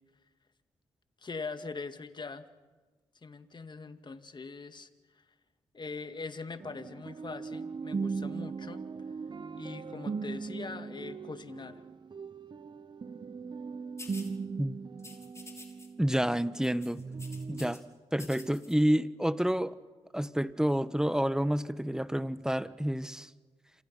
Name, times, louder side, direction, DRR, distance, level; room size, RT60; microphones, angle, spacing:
voice 1, 1.2-2.5 3.2-4.9 5.7-8.8 9.6-11.8, left 4 dB, 45° left, 9 dB, 2.1 m, -42 dB
sound 1, 6.6-16.6 17.0-17.7, right 5 dB, 45° right, 1.1 m, -39 dB
sound 2, 14.0-14.3 15.0-15.9 16.1-16.3 16.6-17.8 18.1-18.7, left 2 dB, 25° left, 5.5 m, -49 dB
voice 2, 16.0-17.0 17.5-17.8 18.1-19.7 20.1-23.3, equal, 5° right, 14 dB, 1.3 m, -29 dB
28.0 x 27.5 x 5.8 m, 1.3 s
supercardioid pair, 45°, 11 cm